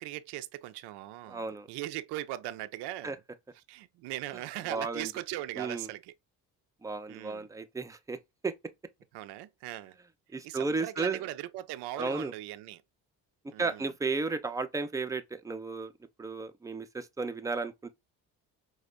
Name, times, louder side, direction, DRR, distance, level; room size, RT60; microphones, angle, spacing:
voice 1, 0.0-3.1 3.7-6.1 7.1-7.5 9.1-10.0 10.4-12.8 13.5-13.9, right 15 dB, 55° right, 0.5 m, -39 dB
voice 2, 1.3-1.7 3.0-3.2 4.7-5.1 5.6-5.9 6.8-8.2 8.4-8.5 10.3-11.2 12.0-12.3 13.6-15.9 16.2-17.9, right 3 dB, 5° right, 0.5 m, -33 dB
4.9 x 2.2 x 2.3 m
hypercardioid pair, 45°, 49 cm